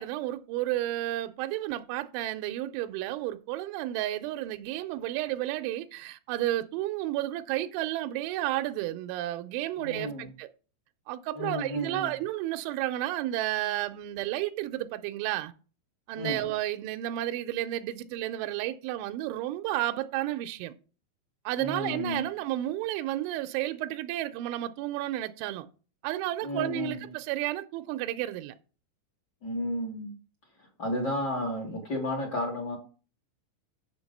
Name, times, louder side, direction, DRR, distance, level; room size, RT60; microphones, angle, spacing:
voice 1, 0.0-10.5 11.1-15.5 16.1-20.7 21.5-25.7 26.0-28.5, right 14 dB, 85° right, 3.0 m, -32 dB
voice 2, 9.8-10.3 11.3-12.1 16.1-16.4 21.6-22.3 26.4-26.9 29.4-30.1 30.8-32.8, left 1 dB, 30° left, 2.1 m, -32 dB
7.6 x 7.1 x 5.3 m
omnidirectional pair, 5.5 m